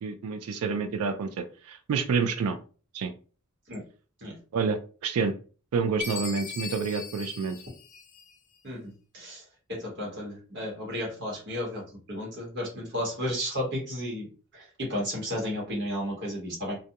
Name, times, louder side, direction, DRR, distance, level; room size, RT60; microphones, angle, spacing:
voice 1, 0.0-2.6 2.9-3.1 4.5-5.3 5.7-7.6, right 5 dB, 75° right, 7 dB, 0.3 m, -28 dB
Chime, 6.0-8.6, left 6 dB, 35° left, 0.4 m, -39 dB
voice 2, 8.6-9.4 9.7-14.3 14.5-16.8, equal, 50° right, -2 dB, 1.1 m, -33 dB
2.3 x 2.2 x 2.7 m, 0.38 s
head